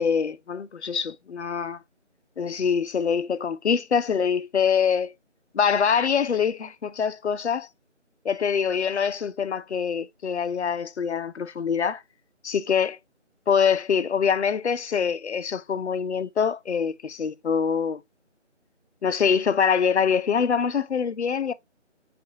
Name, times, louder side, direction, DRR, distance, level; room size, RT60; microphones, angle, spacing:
voice 1, 0.0-1.8 2.4-5.1 5.5-7.7 8.2-12.0 12.4-13.0 13.5-18.0 19.0-21.5, left 6 dB, 65° left, 0.5 m, -24 dB
5.4 x 2.5 x 2.7 m
figure-of-eight pair, 160°, 37 cm